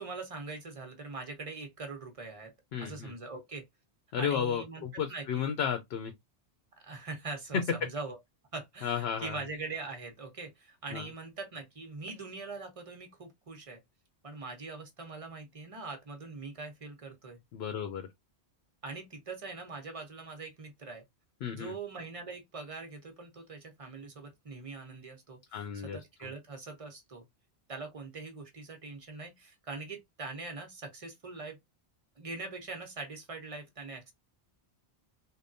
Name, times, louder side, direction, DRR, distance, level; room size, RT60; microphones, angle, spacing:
voice 1, 0.0-2.5 2.8-3.6 4.2-5.5 6.8-8.2 8.5-13.8 14.2-17.4 18.8-21.0 21.5-27.2 27.7-31.6 32.2-34.1, right 3 dB, 35° right, 0.8 m, -42 dB
voice 2, 2.7-3.1 4.1-6.1 8.8-9.4 10.9-11.0 17.5-18.1 21.4-21.7 25.5-26.3, left 8 dB, 70° left, 0.8 m, -33 dB
3.4 x 2.2 x 2.5 m
omnidirectional pair, 1.1 m